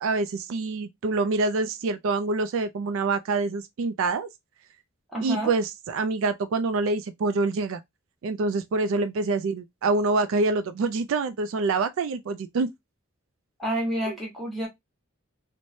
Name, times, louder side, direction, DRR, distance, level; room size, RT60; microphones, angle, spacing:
voice 1, 0.0-4.3 5.2-7.8 8.2-12.7 14.1-14.2, right 3 dB, 70° right, 0.3 m, -26 dB
voice 2, 5.1-5.5 13.6-14.7, right 1 dB, ahead, 1.1 m, -29 dB
3.1 x 2.1 x 2.6 m
head